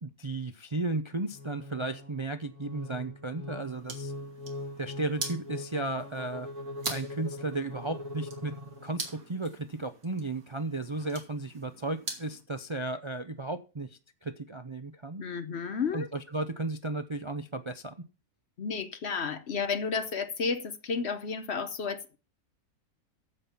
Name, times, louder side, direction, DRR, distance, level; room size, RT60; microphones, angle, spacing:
voice 1, 0.0-4.1 4.8-6.5 6.9-8.5 8.8-15.2 15.9-17.9, right 2 dB, 30° right, 0.5 m, -34 dB
sound 1, 1.3-9.2, left 2 dB, 85° right, 6.4 m, -42 dB
sound 2, 3.6-12.4, right 3 dB, 70° right, 2.8 m, -43 dB
voice 2, 15.2-16.1 18.6-22.2, left 5 dB, 55° left, 1.0 m, -32 dB
14.5 x 5.5 x 5.8 m
omnidirectional pair, 1.5 m